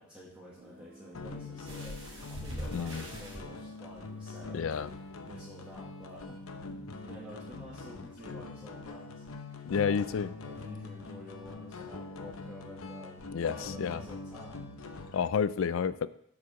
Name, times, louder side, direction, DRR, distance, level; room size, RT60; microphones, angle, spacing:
voice 1, 0.0-4.7 5.2-6.5 7.0-15.1, equal, 5° right, -9 dB, 1.7 m, -50 dB
Guitar, 0.6-6.1, right 1 dB, 60° right, 2.7 m, -60 dB
sound 1, 1.1-15.3, left 3 dB, 90° left, 0.8 m, -44 dB
sound 2, 1.6-3.4 4.4-4.5 4.9-5.0, right 1 dB, 30° right, 2.3 m, -42 dB
voice 2, 2.7-3.0 4.5-4.9 9.7-10.3 13.3-14.0 15.1-16.1, left 6 dB, 70° left, 16 dB, 0.4 m, -30 dB
8.4 x 4.9 x 6.2 m, 0.68 s
head